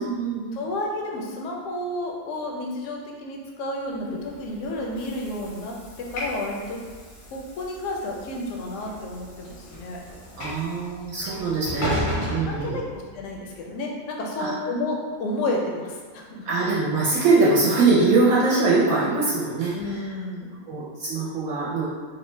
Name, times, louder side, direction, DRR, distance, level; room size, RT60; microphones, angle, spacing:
voice 1, 0.0-0.6 4.0-4.1 10.4-12.8 14.4-14.5 16.4-19.7 20.7-21.9, right 3 dB, 70° right, -6 dB, 1.0 m, -22 dB
voice 2, 0.5-6.8 7.3-10.0 11.3-11.4 12.1-16.5 19.7-20.6, left 2 dB, 65° left, -1 dB, 0.8 m, -31 dB
Train / Sliding door, 4.1-13.4, equal, 90° left, 1.3 m, -35 dB
2.9 x 2.1 x 3.1 m, 1.5 s
omnidirectional pair, 1.6 m